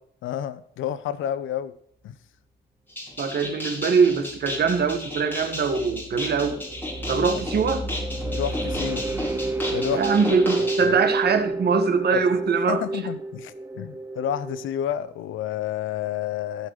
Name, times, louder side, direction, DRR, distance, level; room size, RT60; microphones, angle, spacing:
voice 1, 0.2-1.7 2.0-2.2 7.2-7.4 8.3-9.0 9.7-10.3 10.6-11.0 12.1-12.3 12.7-16.7, left 10 dB, 80° left, 15 dB, 0.8 m, -30 dB
sound 1, 2.9-10.8, left 1 dB, 10° left, 4.9 m, -34 dB
voice 2, 3.2-6.6 7.1-7.8 9.9-12.8, right 5 dB, 55° right, 8 dB, 1.7 m, -22 dB
sound 2, 4.3-14.7, right 2 dB, 15° right, 1.1 m, -30 dB
15.0 x 5.5 x 4.9 m, 0.66 s
cardioid pair, 90°, 20 cm